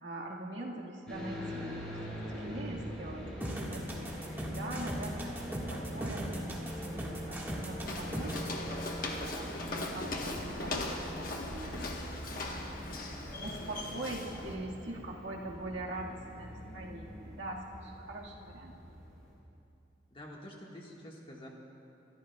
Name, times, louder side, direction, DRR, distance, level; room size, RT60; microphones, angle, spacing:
voice 1, 0.0-2.0 2.3-8.7 9.1-12.7 13.2-18.8, right 2 dB, 75° right, -2 dB, 1.7 m, -43 dB
sound 1, 1.1-19.4, equal, 5° left, 3.5 m, -43 dB
sound 2, 3.4-8.5, right 1 dB, 10° right, 1.5 m, -39 dB
Walk footsteps, 7.9-14.6, left 2 dB, 50° left, 1.2 m, -39 dB
voice 2, 20.1-21.5, left 1 dB, 30° left, -1 dB, 1.5 m, -48 dB
26.5 x 13.5 x 2.3 m, 2.7 s
head